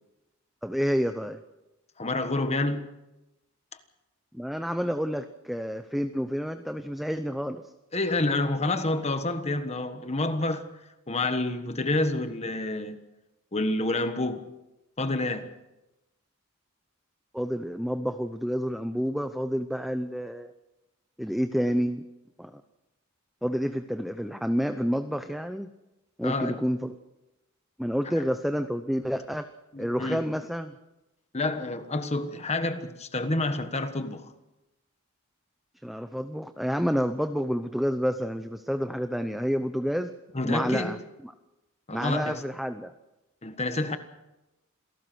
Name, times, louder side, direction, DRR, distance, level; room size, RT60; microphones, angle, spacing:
voice 1, 0.6-1.4 4.3-7.7 17.3-20.5 21.2-22.0 22.4-22.6 23.4-25.7 26.2-26.9 27.8-29.5 29.8-30.7 35.8-40.1 40.4-41.0 41.2-41.3 41.9-42.9, equal, ahead, 0.7 m, -29 dB
voice 2, 2.0-2.9 7.9-10.7 11.1-13.0 13.5-14.5 15.0-15.5 26.2-26.6 29.7-30.2 31.3-34.3 40.3-41.0 41.9-42.4 43.4-44.0, left 2 dB, 30° left, 1.4 m, -28 dB
27.0 x 18.0 x 6.2 m
head